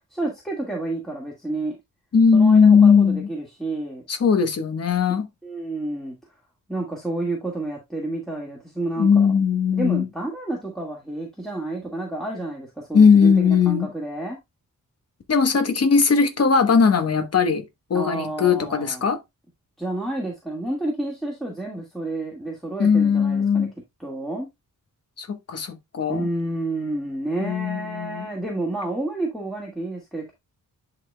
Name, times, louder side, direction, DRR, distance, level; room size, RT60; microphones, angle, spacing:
voice 1, 0.1-1.8 2.3-4.0 5.4-6.2 6.7-9.3 9.7-14.4 17.9-19.0 19.8-23.7 24.0-24.5 26.1-30.3, right 2 dB, ahead, 1.8 m, -30 dB
voice 2, 2.1-3.3 4.1-5.3 9.0-10.0 12.9-13.9 15.3-17.6 17.9-19.2 22.8-23.7 25.2-26.3 27.4-28.3, left 6 dB, 50° left, 1.1 m, -18 dB
10.5 x 4.0 x 2.2 m
wide cardioid pair, 115°, 33 cm